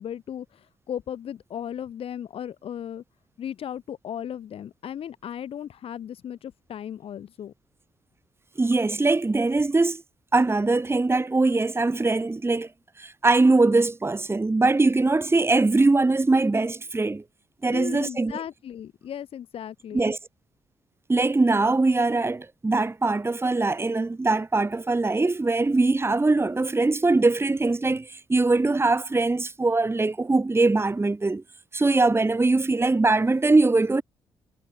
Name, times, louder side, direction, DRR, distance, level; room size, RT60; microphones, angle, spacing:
voice 1, 0.0-3.0 3.4-7.5 17.7-20.2, left 9 dB, 60° left, 1.0 m, -36 dB
voice 2, 8.6-10.0 10.3-12.7 13.0-17.2 17.6-18.4 19.9-20.2 21.1-31.4 31.7-34.0, right 3 dB, 20° right, 1.7 m, -22 dB
hypercardioid pair, 50°, 11 cm